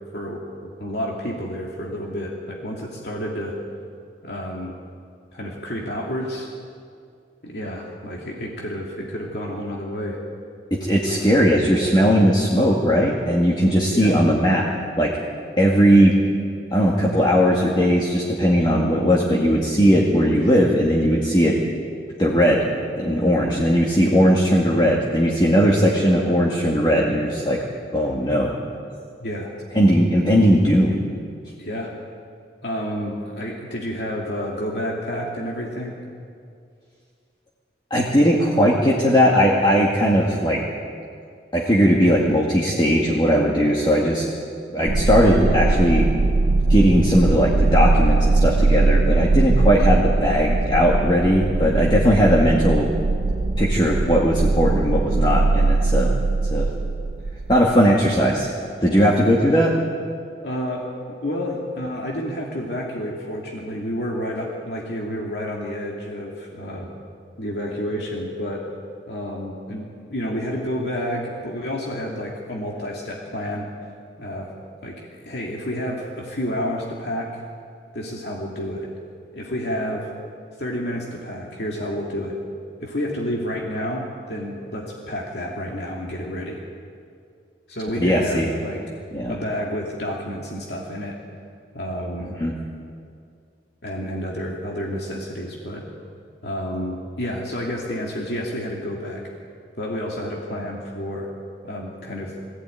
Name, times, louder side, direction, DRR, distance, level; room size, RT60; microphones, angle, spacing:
voice 1, 0.1-3.5 4.2-4.7 5.3-6.5 7.4-10.2 11.1-11.4 13.9-14.2 29.2-29.5 31.6-31.9 32.6-35.9 44.8-45.0 60.4-60.9 61.2-66.9 67.4-68.6 69.1-73.7 74.2-74.5 74.8-77.3 77.9-78.9 79.3-80.1 80.6-82.4 82.8-86.6 87.7-88.8 89.3-91.2 91.7-92.3 93.8-95.8 96.4-99.3 99.8-101.3 101.6-102.3, equal, 65° left, -2 dB, 2.6 m, -30 dB
voice 2, 10.7-14.6 15.0-15.1 15.6-16.1 16.7-21.6 22.2-22.7 23.0-27.6 27.9-28.5 29.7-31.0 37.9-40.6 41.5-44.2 44.7-46.1 46.7-52.9 53.6-56.1 56.5-56.7 57.5-58.5 58.8-59.7 88.0-88.5 89.1-89.4 92.4-92.5, equal, 25° left, -3 dB, 2.1 m, -18 dB
sound 1, 44.9-57.7, right 3 dB, 70° right, 0.6 m, -20 dB
22.0 x 16.0 x 9.3 m, 2.3 s
head